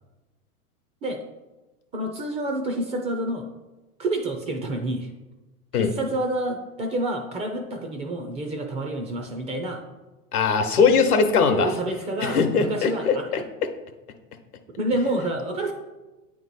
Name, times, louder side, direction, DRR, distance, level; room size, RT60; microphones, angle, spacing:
voice 1, 1.9-3.4 4.0-5.1 5.7-9.8 11.3-13.3 14.8-15.7, right 1 dB, 15° right, 4 dB, 0.3 m, -28 dB
voice 2, 10.3-11.7 12.2-13.4, left 5 dB, 85° left, 7 dB, 0.9 m, -20 dB
8.9 x 3.1 x 4.1 m, 1.1 s
hypercardioid pair, 105°, 43 cm